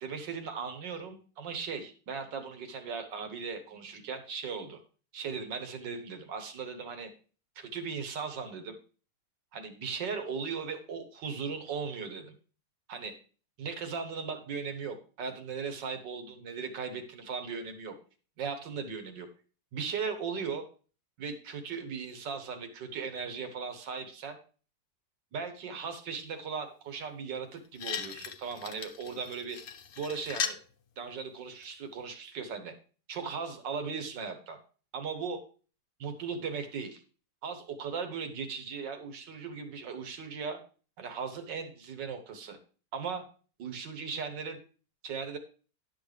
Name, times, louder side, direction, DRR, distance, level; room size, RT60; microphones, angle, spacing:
voice 1, 0.0-4.8 5.1-7.1 7.6-8.8 9.5-12.4 12.9-13.1 13.6-18.0 18.4-19.3 19.7-20.6 21.2-24.4 25.3-29.6 30.0-30.6 31.0-32.7 33.1-34.6 34.9-35.4 36.0-37.0 37.4-40.6 41.0-42.6 42.9-43.2 43.6-44.6 45.0-45.4, right 5 dB, 80° right, 7 dB, 1.9 m, -37 dB
sound 1, 27.4-27.5 27.8-30.6 31.6-31.7, left 7 dB, 60° left, 0.9 m, -37 dB
11.0 x 6.5 x 3.3 m, 0.38 s
omnidirectional pair, 1.9 m